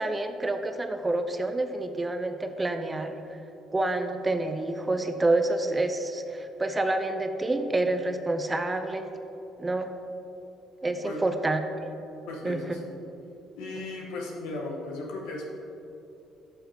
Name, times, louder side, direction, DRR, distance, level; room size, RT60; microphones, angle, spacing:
voice 1, 0.0-3.2 3.7-9.1 9.6-9.9 10.8-11.9 12.4-12.6, right 2 dB, 20° right, 7 dB, 0.6 m, -28 dB
voice 2, 12.3-12.9 13.6-15.5, left 2 dB, 75° left, 0 dB, 1.1 m, -36 dB
12.0 x 5.6 x 2.9 m, 2.8 s
hypercardioid pair, 55°, 0 cm